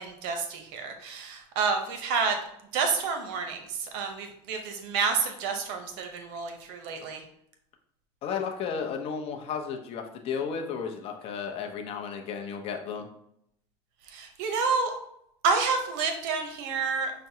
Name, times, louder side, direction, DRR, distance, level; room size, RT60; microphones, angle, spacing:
voice 1, 0.0-2.4 2.7-7.2 14.1-14.9 15.4-17.1, right 5 dB, 70° right, 5 dB, 0.8 m, -29 dB
voice 2, 8.2-13.1, left 6 dB, 45° left, 3 dB, 0.6 m, -33 dB
5.8 x 2.2 x 2.7 m, 0.73 s
supercardioid pair, 130°, 14 cm